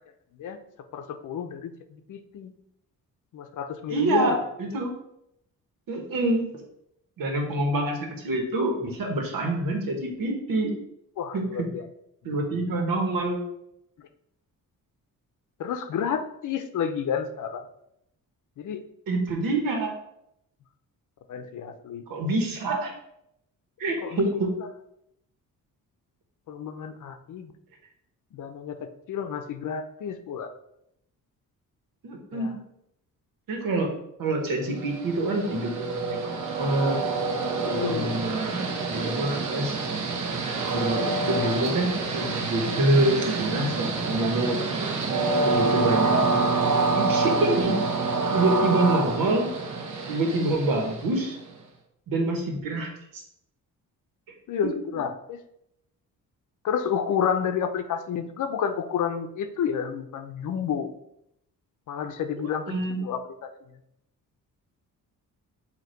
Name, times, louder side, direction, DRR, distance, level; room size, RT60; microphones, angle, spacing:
voice 1, 0.9-2.5 3.3-4.5 11.2-11.8 12.2-12.8 14.0-14.1 15.6-17.6 18.6-18.8 21.3-22.0 24.0-24.3 26.5-27.5 28.3-28.8 29.1-30.5 32.3-32.5 37.6-38.2 40.6-40.7 54.5-55.4 56.6-60.9 61.9-62.6 62.9-63.5, left 7 dB, 60° left, 8 dB, 0.7 m, -30 dB
voice 2, 3.9-4.9 5.9-6.5 7.2-10.7 11.3-11.7 12.2-13.4 19.1-20.0 22.1-22.9 23.8-24.5 32.0-32.6 33.5-33.9 34.2-37.0 37.7-39.8 40.7-44.6 45.4-46.5 46.9-47.8 48.3-49.5 50.1-51.4 52.1-53.2 62.4-63.0, right 2 dB, 80° right, 3 dB, 1.5 m, -26 dB
Train, 34.8-51.5, right 3 dB, 55° right, 1.1 m, -27 dB
7.8 x 2.9 x 4.5 m, 0.78 s
cardioid pair, 135°, 34 cm